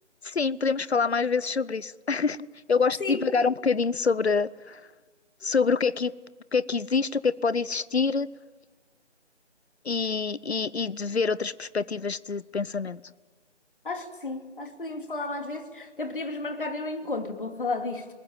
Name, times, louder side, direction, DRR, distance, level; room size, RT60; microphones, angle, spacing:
voice 1, 0.2-2.4 2.7-4.8 5.4-6.1 6.5-8.3 9.8-13.0, left 5 dB, 65° left, 20 dB, 0.9 m, -26 dB
voice 2, 13.8-18.1, left 3 dB, 50° left, 6 dB, 2.8 m, -33 dB
28.5 x 20.5 x 9.0 m, 1.4 s
figure-of-eight pair, 160°, 35 cm